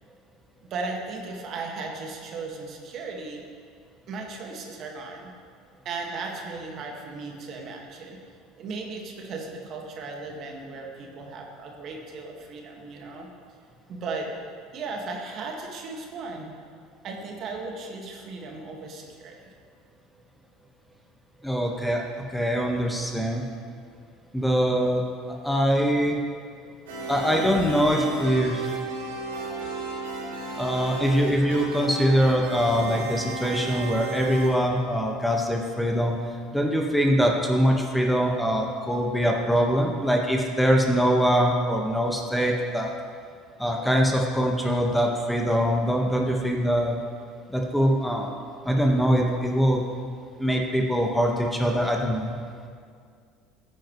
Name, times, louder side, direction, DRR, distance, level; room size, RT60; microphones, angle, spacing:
voice 1, 0.7-3.4 4.1-5.3 5.9-13.3 13.9-14.3 14.7-16.5 17.0-19.5, right 3 dB, 50° right, 1 dB, 2.0 m, -36 dB
voice 2, 21.4-22.0 22.3-23.5 24.3-25.0 25.3-26.2 27.1-28.8 30.5-36.1 36.5-42.9 43.6-47.0 47.5-48.3 48.6-49.8 50.4-52.4, equal, 5° left, 0 dB, 1.6 m, -23 dB
sound 1, 26.9-34.5, right 3 dB, 80° right, 2.3 m, -34 dB
15.5 x 9.4 x 3.3 m, 2.1 s
hypercardioid pair, 75°, 0 cm